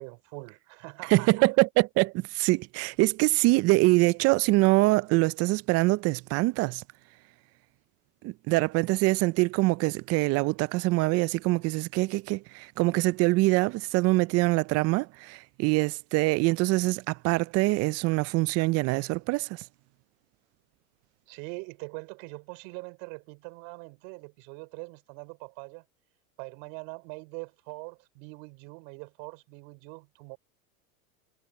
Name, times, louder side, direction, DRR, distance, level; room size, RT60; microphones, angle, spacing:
voice 1, 0.0-1.5 21.3-25.8 26.4-30.4, right 35 dB, 60° right, 5.4 m, -43 dB
voice 2, 1.1-6.8 8.2-19.5, right 22 dB, 35° right, 0.4 m, -24 dB
supercardioid pair, 115°, 43 cm